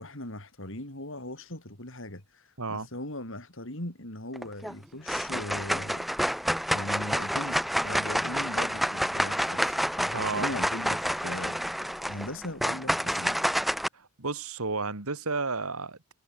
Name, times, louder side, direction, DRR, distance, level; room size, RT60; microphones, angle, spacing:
voice 1, 0.0-6.1 6.7-13.4, left 1 dB, 60° left, 5.0 m, -39 dB
sound 1, 4.4-4.7 5.1-13.9, equal, ahead, 0.4 m, -29 dB
voice 2, 10.1-10.5 13.9-16.1, right 3 dB, 75° right, 2.1 m, -32 dB
head